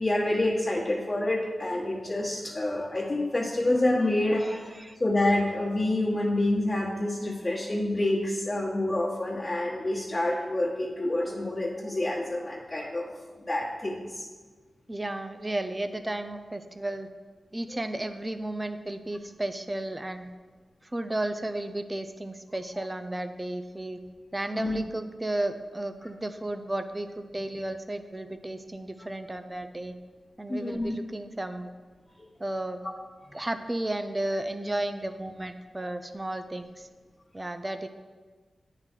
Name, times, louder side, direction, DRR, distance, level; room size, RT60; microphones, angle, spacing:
voice 1, 0.0-4.7 5.0-13.1 13.5-14.3 24.5-24.8 30.5-31.0 32.2-32.3 35.8-35.9, left 1 dB, 35° left, -9 dB, 1.4 m, -27 dB
voice 2, 4.4-5.0 14.9-17.1 17.5-20.3 20.8-24.0 24.3-29.9 30.4-31.7 32.4-32.8 33.3-36.9 37.3-37.9, right 1 dB, 20° right, 9 dB, 0.5 m, -33 dB
9.3 x 3.8 x 4.5 m, 1.4 s
cardioid pair, 55°, 0 cm